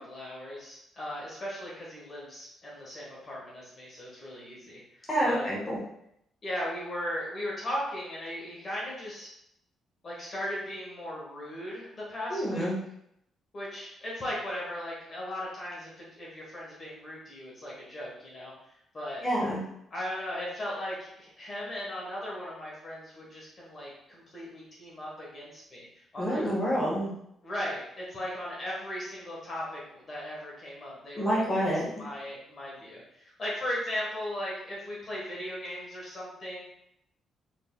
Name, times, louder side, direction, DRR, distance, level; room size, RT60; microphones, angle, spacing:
voice 1, 0.0-5.5 6.4-9.3 10.0-12.7 13.5-18.5 18.9-19.2 19.9-25.9 26.1-26.4 27.4-36.6, left 1 dB, 40° left, -5 dB, 1.3 m, -37 dB
voice 2, 5.1-5.8 12.3-12.8 19.2-19.6 26.2-27.1 31.1-31.9, equal, 20° left, -5 dB, 1.4 m, -27 dB
4.1 x 3.3 x 2.2 m, 0.75 s
cardioid pair, 90°, 0 cm